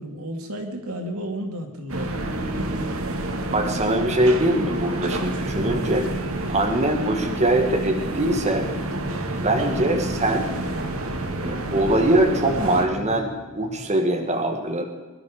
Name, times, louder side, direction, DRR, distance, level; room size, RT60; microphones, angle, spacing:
voice 1, 0.0-2.9, right 1 dB, 90° right, 4 dB, 2.4 m, -33 dB
sound 1, 1.9-12.9, right 2 dB, 70° right, 1.6 m, -29 dB
sound 2, 2.1-14.1, equal, ahead, 2.2 m, -37 dB
voice 2, 3.5-6.1 6.5-8.7 9.4-10.5 11.4-14.8, right 1 dB, 30° right, 3 dB, 1.8 m, -22 dB
22.0 x 12.0 x 5.1 m, 1.3 s
head